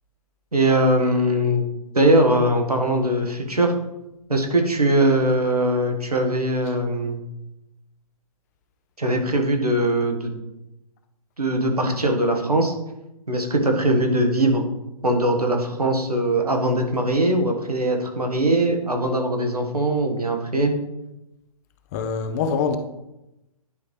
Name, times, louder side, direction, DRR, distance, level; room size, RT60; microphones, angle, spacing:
voice 1, 0.5-1.6 1.9-3.7 4.3-7.2 9.0-10.3 11.4-12.7 13.3-14.6 15.0-20.7, right 1 dB, 80° right, 3 dB, 1.6 m, -21 dB
voice 2, 21.9-22.8, left 5 dB, 25° left, 7 dB, 0.6 m, -24 dB
10.5 x 5.2 x 3.2 m, 0.92 s
figure-of-eight pair, 125°, 19 cm